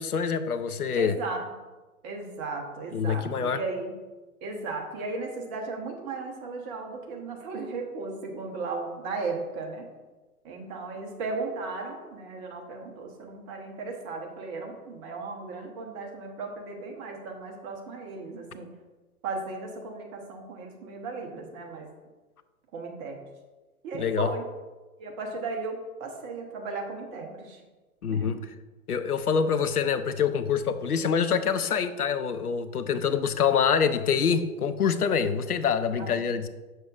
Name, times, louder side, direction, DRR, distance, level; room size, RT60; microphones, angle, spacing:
voice 1, 0.0-1.1 2.9-3.6 24.0-24.3 28.0-28.4 28.9-36.5, left 7 dB, 85° left, 11 dB, 0.6 m, -25 dB
voice 2, 0.9-1.4 2.0-3.9 4.4-9.9 10.4-18.7 19.2-21.9 22.7-23.2 23.8-24.5 25.0-27.6 28.1-28.4 36.0-36.1, right 3 dB, 20° right, 2 dB, 0.8 m, -36 dB
6.5 x 6.1 x 2.4 m, 1.2 s
figure-of-eight pair, 115°, 44 cm